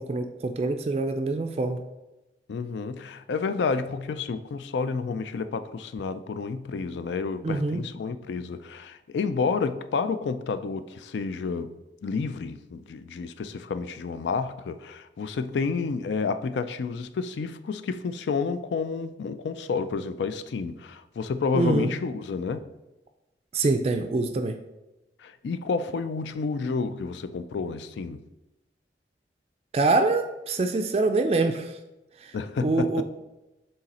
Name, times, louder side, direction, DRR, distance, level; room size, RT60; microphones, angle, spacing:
voice 1, 0.0-1.8 7.4-7.8 21.5-21.9 23.5-24.6 29.7-31.8 32.2-32.4 32.6-33.0, right 3 dB, 35° right, 0.3 m, -25 dB
voice 2, 2.5-11.7 12.0-22.6 25.2-28.2 32.3-33.0, left 4 dB, 85° left, 0.4 m, -30 dB
6.5 x 3.9 x 4.1 m
head